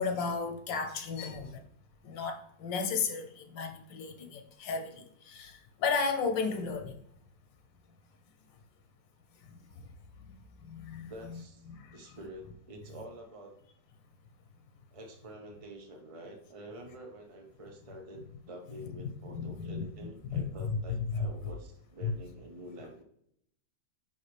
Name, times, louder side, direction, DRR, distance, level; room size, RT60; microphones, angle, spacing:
voice 1, 0.0-1.6 2.0-7.0 9.5-9.6 10.2-11.4 11.7-12.0 19.3-19.8 20.3-20.4 21.1-21.3 22.0-22.1, left 5 dB, 85° left, 6 dB, 1.6 m, -34 dB
voice 2, 11.1-11.7 11.9-13.5 14.9-23.0, right 1 dB, 40° right, 2 dB, 0.4 m, -47 dB
9.9 x 3.5 x 3.3 m, 0.70 s
omnidirectional pair, 1.9 m